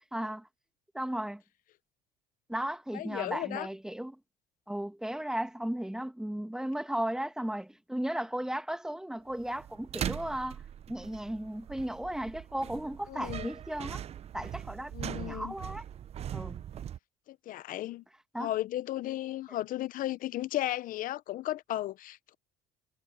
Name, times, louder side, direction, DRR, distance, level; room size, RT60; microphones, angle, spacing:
voice 1, 0.1-0.4 0.9-1.4 2.5-4.2 4.7-10.6 10.9-14.0 14.3-15.8 16.3-16.6 18.3-18.5, right 1 dB, 5° right, 1.8 m, -35 dB
voice 2, 2.9-3.7 13.1-13.5 14.9-15.5 17.3-18.0 18.4-22.3, left 14 dB, 55° left, 0.8 m, -35 dB
sound 1, 9.3-17.0, right 10 dB, 35° right, 0.7 m, -40 dB
cardioid pair, 115°, 17 cm